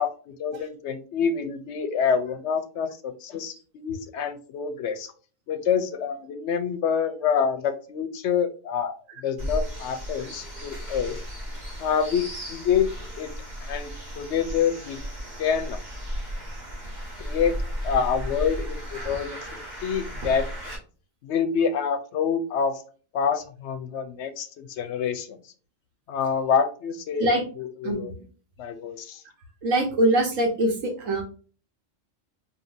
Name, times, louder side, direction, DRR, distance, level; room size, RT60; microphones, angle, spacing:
voice 1, 0.0-5.1 5.5-11.2 11.8-12.9 13.2-13.3 13.6-13.9 14.2-15.0 15.4-15.8 17.2-19.5 19.8-20.5 21.2-22.8 23.1-25.4 26.1-27.3 27.6-28.1 28.6-29.2, left 7 dB, 70° left, 9 dB, 0.8 m, -27 dB
sound 1, 9.4-20.7, equal, 35° right, 1.7 m, -34 dB
voice 2, 27.8-28.2 29.6-31.2, right 1 dB, 90° right, 2 dB, 1.4 m, -23 dB
5.3 x 2.7 x 2.5 m, 0.39 s
omnidirectional pair, 1.3 m